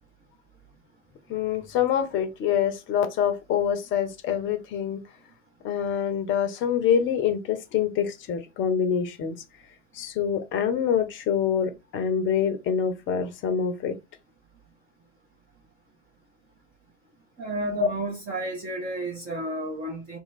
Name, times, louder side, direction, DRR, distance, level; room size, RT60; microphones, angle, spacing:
voice 1, 1.3-5.0 5.6-9.3 9.9-13.9 17.8-17.9, left 8 dB, 35° left, 0.8 m, -25 dB
voice 2, 17.4-20.2, right 1 dB, 25° right, 1.1 m, -31 dB
2.9 x 2.3 x 4.1 m
figure-of-eight pair, 90°, 36 cm